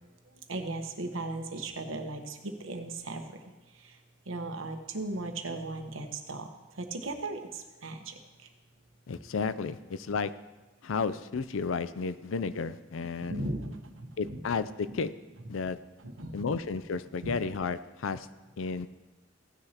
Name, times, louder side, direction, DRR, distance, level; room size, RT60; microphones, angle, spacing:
voice 1, 0.5-3.2 3.8-3.9 4.3-6.5 6.8-8.2 13.0-14.4 14.9-15.0 16.0-16.5 17.2-17.3, right 2 dB, 85° right, 5 dB, 1.1 m, -37 dB
voice 2, 9.1-10.3 10.8-13.5 14.2-15.1 15.5-15.8 16.3-18.3 18.6-18.9, left 5 dB, 90° left, 14 dB, 0.5 m, -32 dB
15.5 x 9.6 x 2.9 m, 1.1 s
head